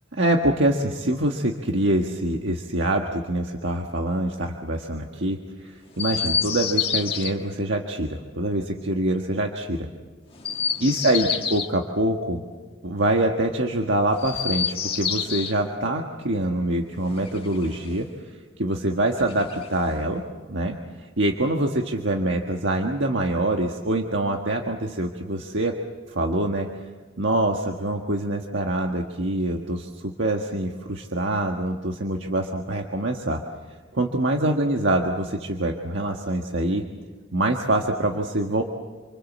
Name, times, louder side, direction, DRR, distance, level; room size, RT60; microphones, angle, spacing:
voice 1, 0.1-9.9 10.8-12.4 12.8-18.1 18.6-20.2 20.5-20.8 21.0-25.8 26.1-26.7 27.2-33.4 33.9-36.8 37.3-38.6, right 1 dB, 65° right, 2 dB, 1.6 m, -25 dB
Chirp tweet, 5.9-7.3 10.3-11.7 14.1-15.6 17.0-18.1 19.2-20.1, left 7 dB, 30° left, 1.8 m, -28 dB
28.0 x 25.0 x 7.4 m, 1.4 s
head